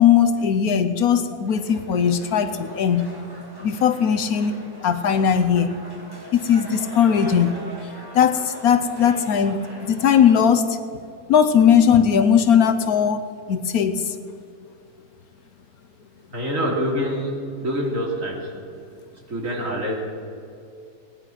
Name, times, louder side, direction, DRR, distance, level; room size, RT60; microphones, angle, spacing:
voice 1, 0.0-3.1 3.6-4.5 4.8-5.7 6.3-7.6 8.1-10.8 11.3-13.2 13.5-14.2, left 8 dB, 70° left, 9 dB, 1.2 m, -18 dB
sound 1, 1.5-10.4, right 1 dB, 15° right, 1.7 m, -41 dB
voice 2, 16.3-17.3 17.6-18.5 19.3-20.0, equal, 50° right, -2 dB, 3.2 m, -25 dB
18.5 x 10.5 x 6.0 m, 2.4 s
omnidirectional pair, 1.7 m